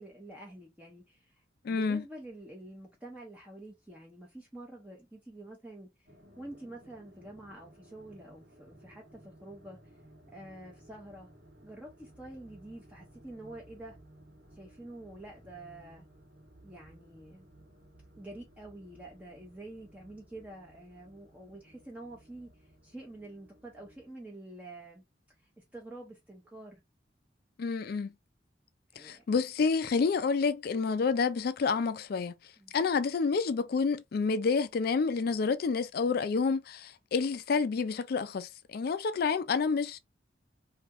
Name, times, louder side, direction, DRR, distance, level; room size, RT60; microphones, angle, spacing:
voice 1, 0.0-6.1 6.4-9.8 10.3-11.3 11.6-14.0 14.5-16.1 16.6-17.5 18.2-25.0 25.6-26.8 28.9-29.2 32.6-32.7, right 1 dB, 10° right, 0.7 m, -48 dB
voice 2, 1.6-2.0 27.6-28.1 29.0-32.3 32.7-40.0, left 5 dB, 55° left, 0.4 m, -29 dB
sound 1, 6.1-24.1, right 1 dB, 60° right, 1.3 m, -58 dB
3.4 x 2.7 x 2.4 m
head